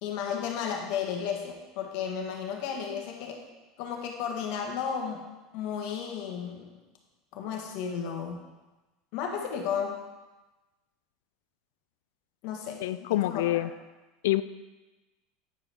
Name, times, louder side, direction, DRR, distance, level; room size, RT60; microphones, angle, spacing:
voice 1, 0.0-3.4 3.8-6.7 7.3-8.4 9.1-10.0 12.4-12.8 13.2-13.6, left 7 dB, 65° left, 2 dB, 1.5 m, -33 dB
voice 2, 12.8-13.7 14.2-14.4, left 15 dB, 80° left, 14 dB, 0.4 m, -26 dB
9.0 x 5.1 x 4.5 m, 1.1 s
supercardioid pair, 105°, 0 cm